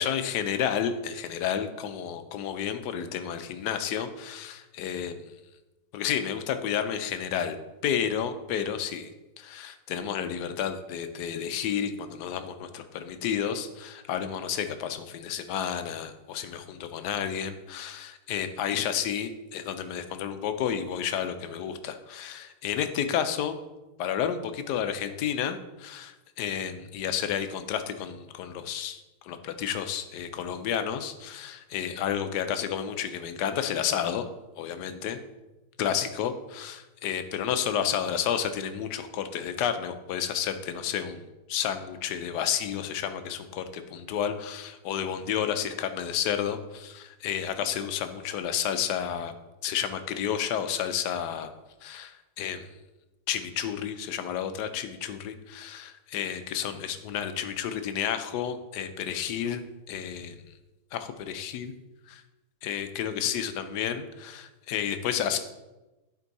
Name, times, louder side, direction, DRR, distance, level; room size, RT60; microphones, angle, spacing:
voice 1, 0.0-5.2 5.9-7.6 7.8-9.1 9.4-23.6 24.0-34.3 34.6-35.2 35.8-49.3 49.6-51.5 51.8-52.7 53.3-60.3 60.9-61.7 62.1-62.2 62.6-65.4, left 9 dB, 70° left, 9 dB, 1.0 m, -31 dB
11.0 x 4.5 x 4.1 m, 1.1 s
omnidirectional pair, 2.3 m